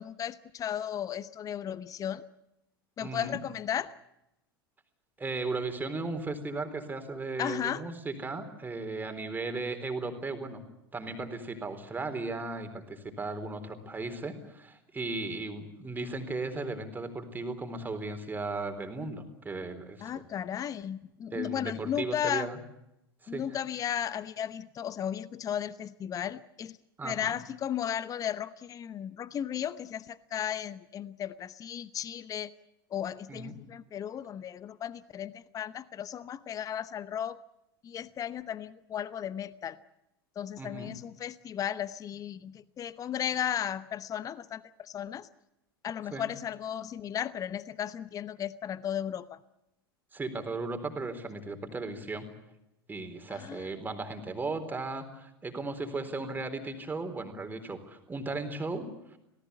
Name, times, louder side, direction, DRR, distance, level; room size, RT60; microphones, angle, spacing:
voice 1, 0.0-2.2 3.0-3.9 7.4-7.8 20.0-22.5 23.3-26.8 27.0-32.5 32.9-37.4 37.8-39.8 40.4-45.3 45.8-49.4 53.3-53.7, left 9 dB, 25° left, 17 dB, 0.9 m, -35 dB
voice 2, 3.0-3.4 5.2-10.6 10.9-20.2 21.3-22.6 23.2-23.4 27.0-27.3 33.3-33.6 40.6-40.9 46.1-46.3 50.1-52.3 52.9-59.2, right 3 dB, 15° right, 7 dB, 3.9 m, -36 dB
27.0 x 18.5 x 8.2 m, 0.86 s
figure-of-eight pair, 85°, 13 cm